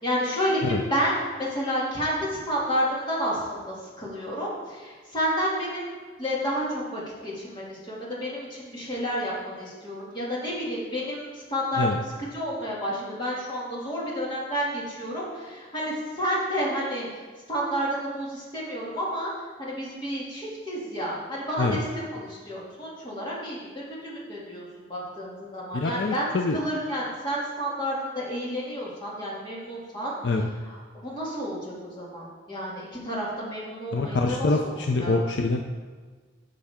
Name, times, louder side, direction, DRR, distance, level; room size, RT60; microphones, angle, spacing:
voice 1, 0.0-17.1 17.5-19.3 19.6-21.8 22.1-24.6 24.9-30.2 30.7-35.2, equal, 25° left, -6 dB, 2.4 m, -30 dB
voice 2, 25.7-26.6 30.2-30.5 33.9-35.6, left 3 dB, 65° left, 3 dB, 0.5 m, -25 dB
11.5 x 6.7 x 3.7 m, 1.4 s
head